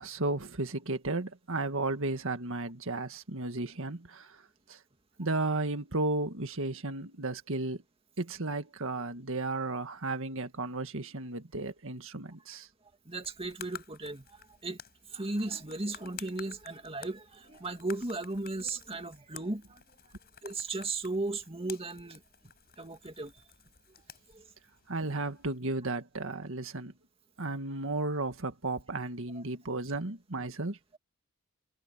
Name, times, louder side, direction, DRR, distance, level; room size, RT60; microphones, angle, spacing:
voice 1, 0.0-4.4 4.7-4.8 5.2-7.8 8.2-12.7 24.9-26.9 27.4-30.8, right 2 dB, 65° right, 1.9 m, -34 dB
sound 1, 13.1-25.6, left 9 dB, 45° left, 5.0 m, -52 dB
voice 2, 13.1-14.8 15.1-19.8 20.4-22.2 22.8-23.3 24.3-24.4, right 2 dB, 25° right, 2.4 m, -36 dB
head